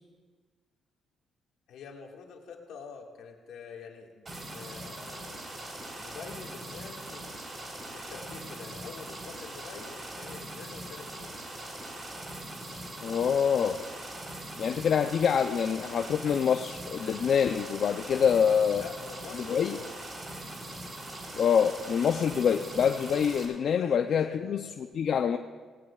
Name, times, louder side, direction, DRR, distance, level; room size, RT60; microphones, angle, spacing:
voice 1, 1.7-5.5 6.0-7.5 7.9-11.5 18.7-19.9 23.7-24.6, left 6 dB, 80° left, 1 dB, 2.0 m, -46 dB
sound 1, 4.2-23.4, right 1 dB, 35° right, 3.8 m, -41 dB
voice 2, 13.0-13.8 14.6-18.8 19.5-19.8 21.4-24.6 24.9-25.4, left 7 dB, 60° left, 6 dB, 0.5 m, -25 dB
18.0 x 18.0 x 2.4 m, 1.5 s
cardioid pair, 90°, 0 cm